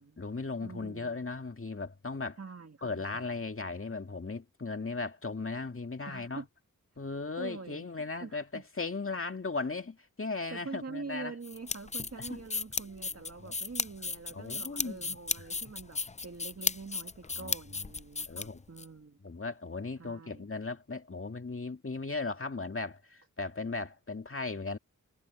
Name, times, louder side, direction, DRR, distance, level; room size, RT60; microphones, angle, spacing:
voice 1, 0.0-2.4 2.8-6.4 7.0-11.3 12.2-12.4 13.4-13.5 14.3-15.2 17.3-17.9 18.3-18.6 19.2-24.8, left 3 dB, 45° left, 2.2 m, -37 dB
voice 2, 0.6-1.2 2.4-3.3 6.1-6.5 7.4-8.6 10.5-19.2 20.0-20.5, right 4 dB, 50° right, 2.0 m, -45 dB
sound 1, 11.4-18.9, left 4 dB, 25° left, 0.4 m, -35 dB
wide cardioid pair, 75°, 31 cm